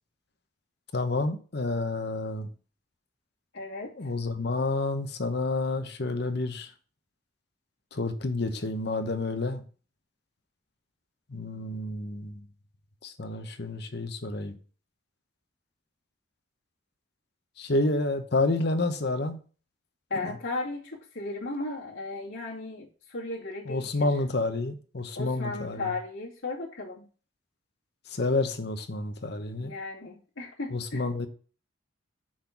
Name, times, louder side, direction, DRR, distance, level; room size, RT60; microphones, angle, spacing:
voice 1, 0.9-2.5 4.0-6.7 7.9-9.6 11.3-12.5 13.0-14.6 17.6-19.4 20.2-20.3 23.7-25.9 28.1-29.7 30.7-31.3, left 2 dB, 55° left, 0.9 m, -29 dB
voice 2, 3.5-3.9 20.1-24.1 25.1-27.1 29.6-31.1, left 3 dB, 80° left, 2.4 m, -36 dB
6.4 x 3.9 x 5.8 m
head